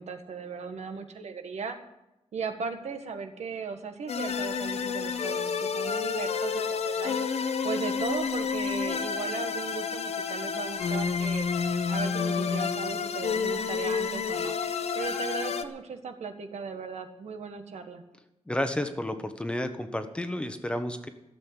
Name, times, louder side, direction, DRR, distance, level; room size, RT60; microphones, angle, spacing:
voice 1, 0.0-1.8 2.3-7.2 7.6-11.5 11.9-14.5 14.9-18.0, right 5 dB, 85° right, 6 dB, 1.6 m, -37 dB
sound 1, 4.1-15.6, left 5 dB, 70° left, 0.9 m, -29 dB
voice 2, 18.5-21.1, left 1 dB, 10° left, 7 dB, 1.0 m, -31 dB
14.5 x 7.7 x 9.9 m, 0.90 s
wide cardioid pair, 170°, 11 cm